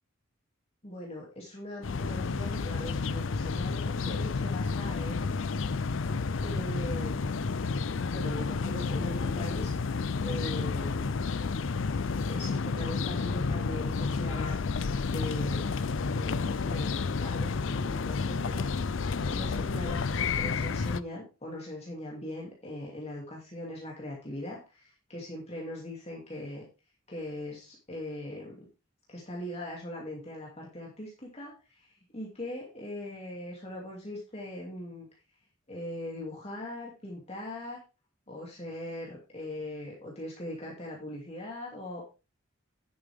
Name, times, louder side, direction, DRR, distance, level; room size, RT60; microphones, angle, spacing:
voice 1, 0.8-5.3 6.4-7.4 8.1-9.7 10.2-11.2 12.3-14.6 15.0-15.7 16.1-26.7 27.1-28.7 29.1-35.1 35.7-37.8 38.3-42.0, left 1 dB, 30° left, -2 dB, 2.6 m, -40 dB
sound 1, 1.8-21.0, left 4 dB, 65° left, 0.5 m, -31 dB
10.5 x 8.6 x 3.6 m, 0.30 s
head